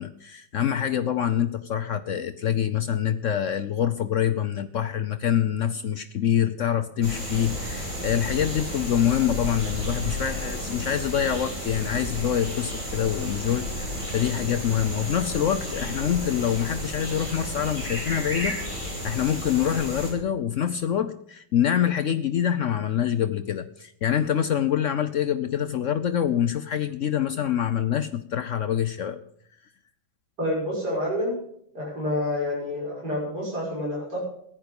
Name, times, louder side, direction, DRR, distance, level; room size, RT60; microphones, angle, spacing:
voice 1, 0.0-18.6 19.0-29.2, left 9 dB, 85° left, 10 dB, 0.6 m, -25 dB
sound 1, 7.0-20.1, equal, 15° right, 5.3 m, -32 dB
voice 2, 30.4-31.3 31.7-34.2, left 1 dB, 50° right, -5 dB, 6.6 m, -28 dB
15.0 x 10.5 x 6.9 m, 0.69 s
omnidirectional pair, 2.2 m